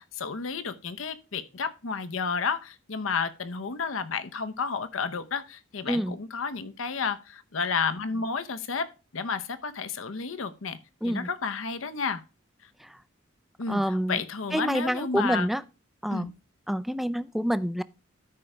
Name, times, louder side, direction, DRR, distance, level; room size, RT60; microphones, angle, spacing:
voice 1, 0.0-10.8 11.0-12.2 13.6-15.5 16.1-16.3, left 5 dB, 75° left, 0.8 m, -31 dB
voice 2, 5.9-6.2 11.0-11.3 12.8-12.9 13.7-14.2 14.5-15.6 16.0-16.3 16.7-17.8, equal, ahead, 0.3 m, -27 dB
13.0 x 4.9 x 3.3 m
head